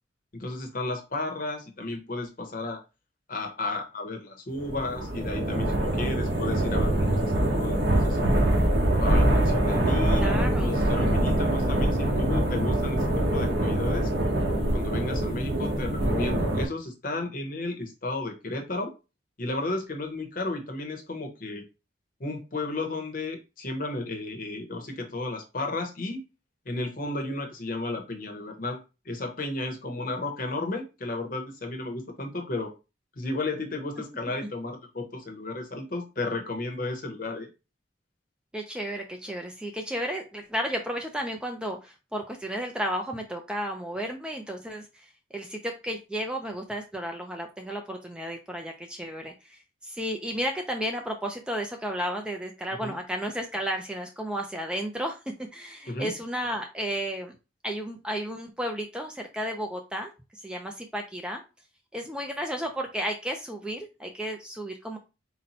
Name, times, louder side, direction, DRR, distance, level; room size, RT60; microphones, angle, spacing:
voice 1, 0.3-2.8 3.3-8.4 9.0-14.1 14.7-18.9 19.4-21.6 22.2-26.2 26.7-28.8 29.0-32.7 33.2-37.5 52.8-52.9 55.9-56.1, left 2 dB, 45° left, 4 dB, 0.8 m, -33 dB
sound 1, 4.6-16.7, right 1 dB, 60° right, 1.1 m, -24 dB
voice 2, 10.1-10.7 38.5-55.2 55.5-57.3 57.6-61.4 61.9-65.0, equal, 5° right, 3 dB, 0.4 m, -33 dB
4.0 x 2.2 x 4.1 m, 0.29 s
head